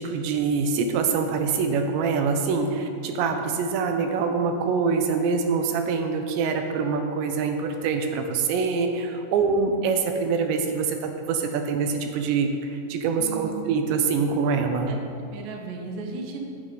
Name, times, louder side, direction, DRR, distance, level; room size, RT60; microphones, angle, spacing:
voice 1, 0.0-15.0, right 5 dB, 85° right, 5 dB, 3.1 m, -25 dB
voice 2, 13.2-13.6 14.9-15.0 15.3-16.4, right 4 dB, 65° right, 1 dB, 2.5 m, -35 dB
15.5 x 9.5 x 3.9 m, 2.5 s
omnidirectional pair, 5.0 m